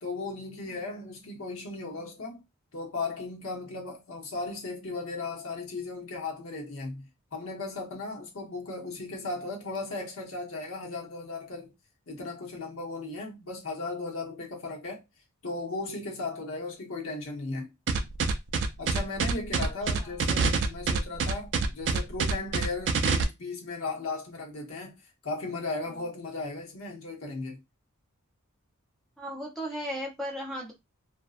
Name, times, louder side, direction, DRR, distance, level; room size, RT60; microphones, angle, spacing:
voice 1, 0.0-2.4 2.7-11.7 12.1-15.0 15.4-17.7 18.8-25.0 25.2-27.6, left 3 dB, 65° left, 0.9 m, -36 dB
sound 1, 17.9-23.2, right 5 dB, 50° right, 0.4 m, -26 dB
voice 2, 29.2-30.7, equal, ahead, 0.6 m, -35 dB
2.6 x 2.1 x 2.4 m
head